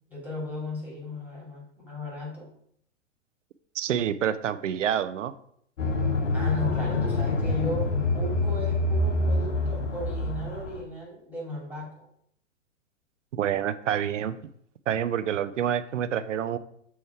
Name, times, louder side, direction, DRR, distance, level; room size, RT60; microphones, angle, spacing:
voice 1, 0.1-2.5 6.3-7.9 8.1-11.9, left 1 dB, 5° right, -4 dB, 2.5 m, -35 dB
voice 2, 3.7-5.3 13.3-14.4 14.9-16.6, right 9 dB, 75° right, 13 dB, 0.6 m, -27 dB
sound 1, 5.8-10.8, left 2 dB, 75° left, 1.1 m, -26 dB
7.0 x 3.2 x 4.7 m, 0.68 s
hypercardioid pair, 110°, 37 cm